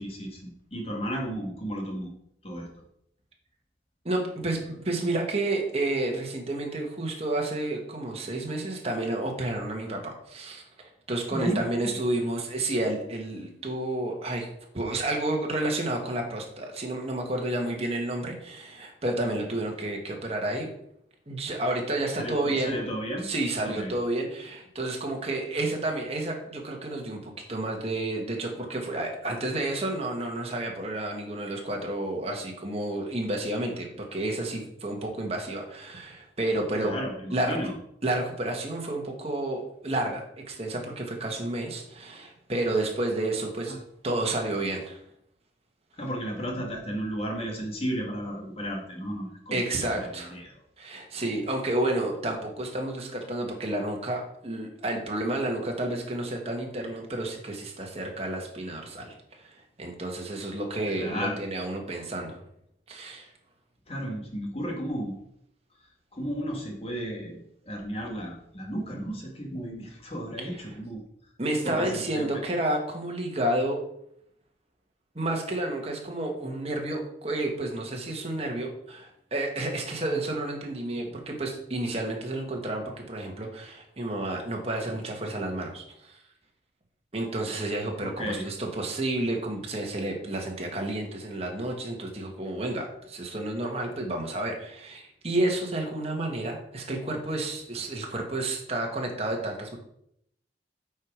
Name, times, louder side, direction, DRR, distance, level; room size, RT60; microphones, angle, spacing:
voice 1, 0.0-2.1 2.4-2.7 11.3-11.9 22.2-23.3 23.6-23.9 36.8-37.7 43.7-43.8 46.0-49.6 49.9-50.5 60.9-61.4 63.9-65.2 66.1-67.4 67.7-71.0 71.6-72.3 88.0-88.5, equal, 35° left, 0 dB, 1.9 m, -33 dB
voice 2, 4.0-10.6 11.1-14.5 14.7-20.7 21.3-22.8 23.2-36.9 37.3-37.6 38.0-43.8 44.0-45.0 49.5-50.4 50.8-62.4 62.9-63.3 70.4-70.7 71.4-73.8 75.1-86.2 87.1-99.8, right 1 dB, 35° right, 1 dB, 1.6 m, -30 dB
8.2 x 4.8 x 5.0 m, 0.74 s
head